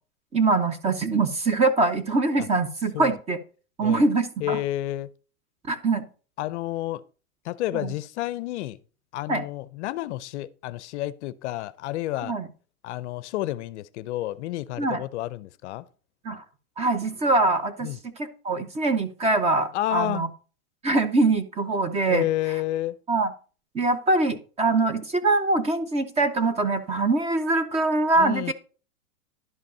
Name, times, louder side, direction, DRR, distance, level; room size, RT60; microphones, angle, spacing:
voice 1, 0.3-3.4 3.8-4.6 5.7-6.1 7.7-7.9 9.3-9.4 12.2-12.5 14.8-15.0 16.2-16.4 16.8-17.9 18.2-20.3 20.8-22.3 23.1-23.3 23.7-28.5, right 3 dB, 15° right, 0.7 m, -23 dB
voice 2, 4.4-5.1 6.4-7.0 7.4-8.8 9.1-12.4 12.8-15.9 17.8-18.0 19.7-20.3 22.1-23.0 28.2-28.5, left 15 dB, 50° left, 0.6 m, -30 dB
11.0 x 5.2 x 5.4 m
hypercardioid pair, 135°, 44 cm